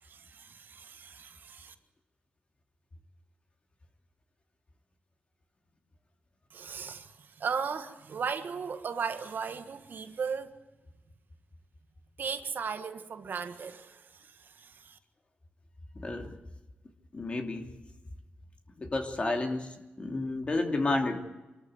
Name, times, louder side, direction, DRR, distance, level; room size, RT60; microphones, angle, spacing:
voice 1, 0.0-1.7 6.5-10.5 12.2-15.0, right 6 dB, 60° right, 1.6 m, -37 dB
voice 2, 15.9-16.4 17.1-17.7 18.8-21.2, left 2 dB, 30° left, 2.8 m, -31 dB
25.5 x 13.5 x 9.5 m
wide cardioid pair, 125°, 4 cm